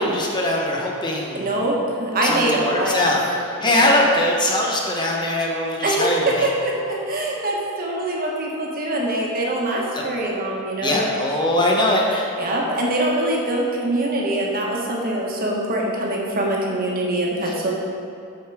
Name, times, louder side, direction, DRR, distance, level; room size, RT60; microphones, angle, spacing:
voice 1, 0.0-1.6 2.2-3.2 3.6-6.5 9.9-10.0 10.8-12.3 17.5-17.6, left 1 dB, 20° left, -1 dB, 0.9 m, -21 dB
voice 2, 1.3-3.1 3.6-4.0 5.8-11.1 12.4-17.7, right 1 dB, 45° right, -2 dB, 1.4 m, -23 dB
7.7 x 6.5 x 4.8 m, 2.5 s
head